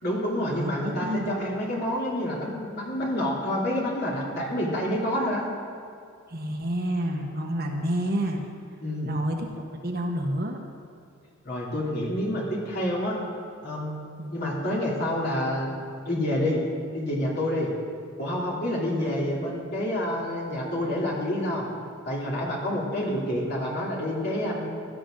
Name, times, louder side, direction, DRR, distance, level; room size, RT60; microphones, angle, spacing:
voice 1, 0.0-5.5 8.8-9.1 11.4-13.2 13.6-14.0 14.3-15.8 16.0-16.6 16.9-17.7 18.2-21.7 22.0-24.7, left 1 dB, 50° left, -5 dB, 3.1 m, -28 dB
voice 2, 0.5-1.3 6.3-8.4 9.0-10.6 14.2-14.3 19.0-19.2, right 1 dB, 45° right, 2 dB, 1.3 m, -29 dB
17.0 x 12.0 x 3.9 m, 2.4 s
head